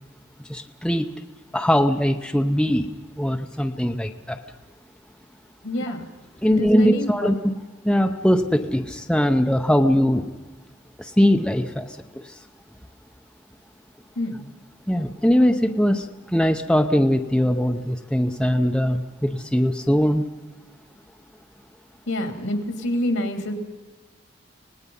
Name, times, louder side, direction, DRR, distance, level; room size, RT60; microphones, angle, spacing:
voice 1, 0.5-1.1 1.5-2.9 3.2-4.4 6.4-7.6 7.8-10.2 11.0-12.0 14.9-20.2, equal, 5° left, 4 dB, 0.7 m, -21 dB
voice 2, 5.6-6.1 6.5-7.3 14.2-14.5 22.1-23.5, left 1 dB, 80° left, 6 dB, 2.8 m, -27 dB
26.0 x 19.0 x 5.5 m, 1.3 s
head